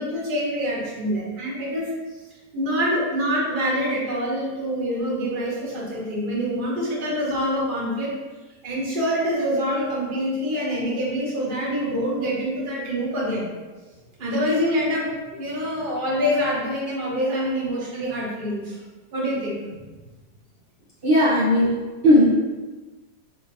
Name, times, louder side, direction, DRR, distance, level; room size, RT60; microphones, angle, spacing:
voice 1, 0.0-1.9 2.5-8.1 8.6-13.5 14.2-18.7 19.1-19.8, equal, 40° right, -6 dB, 0.9 m, -25 dB
voice 2, 21.0-21.8 22.0-22.3, equal, 65° right, -8 dB, 0.5 m, -16 dB
4.3 x 2.5 x 2.7 m, 1.2 s
omnidirectional pair, 1.8 m